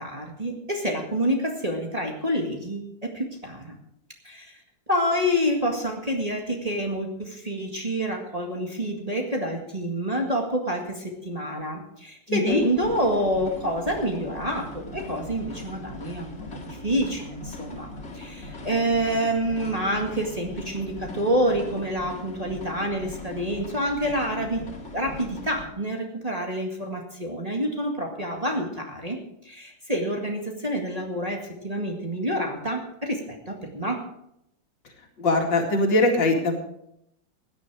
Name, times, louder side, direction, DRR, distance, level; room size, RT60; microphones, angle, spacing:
voice 1, 0.0-3.8 4.2-4.6 4.9-24.7 24.9-29.2 29.4-34.0, equal, 20° right, 0 dB, 1.9 m, -28 dB
voice 2, 12.3-12.6 35.2-36.6, left 2 dB, 70° left, 2 dB, 3.0 m, -21 dB
sound 1, 12.5-25.6, left 2 dB, 35° left, 2.4 m, -40 dB
16.5 x 10.5 x 4.8 m, 0.79 s
omnidirectional pair, 2.0 m